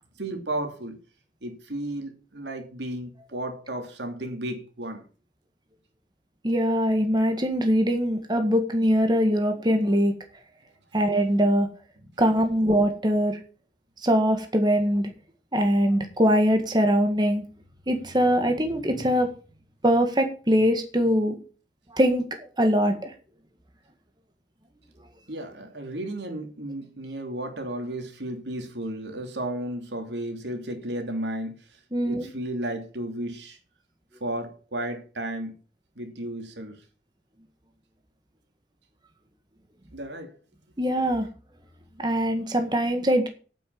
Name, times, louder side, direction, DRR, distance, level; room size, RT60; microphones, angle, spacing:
voice 1, 0.2-1.0 1.4-5.0 10.9-11.0 12.0-12.1 25.3-31.7 32.0-33.6 34.2-35.5 36.0-36.8 39.9-40.4, right 1 dB, 80° right, 3.0 m, -33 dB
voice 2, 6.4-10.1 10.9-11.7 12.2-13.4 14.0-15.1 15.5-17.4 17.9-19.3 19.8-21.4 21.9-22.2 22.6-23.1 31.9-32.3 40.8-41.3 42.0-43.3, equal, 25° right, 1.7 m, -22 dB
9.4 x 8.8 x 7.0 m
head